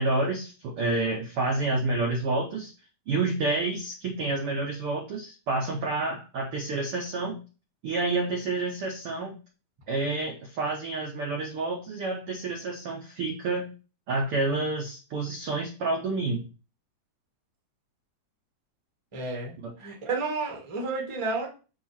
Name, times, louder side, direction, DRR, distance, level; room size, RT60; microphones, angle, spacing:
voice 1, 0.0-2.7 3.1-7.4 7.8-9.3 9.9-13.7 14.1-16.5 19.6-19.7, right 3 dB, 85° right, 1 dB, 1.2 m, -29 dB
voice 2, 19.1-21.5, right 3 dB, 50° right, 0 dB, 0.3 m, -31 dB
6.9 x 2.9 x 5.7 m, 0.34 s
omnidirectional pair, 4.0 m